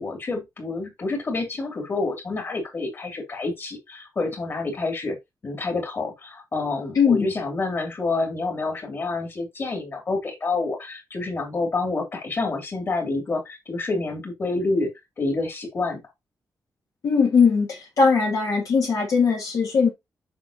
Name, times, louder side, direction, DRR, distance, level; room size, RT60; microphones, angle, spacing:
voice 1, 0.0-5.2 5.4-14.9 15.2-16.0, left 3 dB, 35° left, 2.6 m, -28 dB
voice 2, 7.0-7.3 17.0-19.9, left 5 dB, 60° left, 1.7 m, -20 dB
7.5 x 5.9 x 2.8 m
wide cardioid pair, 180°, 7 cm